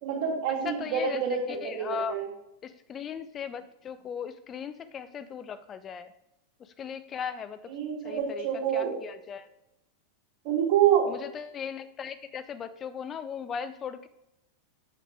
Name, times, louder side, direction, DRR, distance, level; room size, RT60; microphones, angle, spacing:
voice 1, 0.0-2.3 7.7-8.9 10.4-11.1, right 8 dB, 45° right, -1 dB, 2.8 m, -27 dB
voice 2, 0.6-1.2 1.5-2.2 2.6-6.1 6.6-7.7 8.0-8.5 8.7-9.5 11.1-14.1, left 7 dB, 25° left, 13 dB, 0.4 m, -38 dB
7.8 x 6.3 x 4.7 m, 0.88 s
figure-of-eight pair, 90°, 0 cm